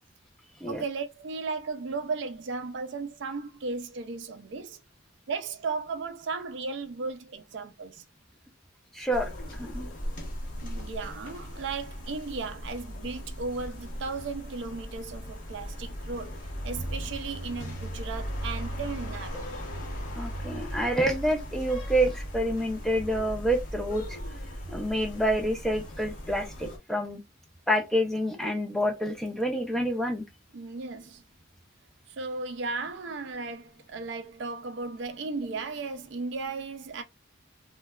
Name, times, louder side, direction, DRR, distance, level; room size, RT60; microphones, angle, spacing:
voice 1, 0.7-4.8 5.3-8.0 10.6-19.5 30.5-31.2 32.1-37.0, right 4 dB, 60° right, 0.4 m, -35 dB
voice 2, 8.9-9.3 9.6-9.9 20.2-24.2 24.7-27.2 27.7-30.2, equal, ahead, 0.5 m, -28 dB
sound 1, 9.1-26.8, equal, 40° left, 0.9 m, -37 dB
3.0 x 2.2 x 2.2 m
head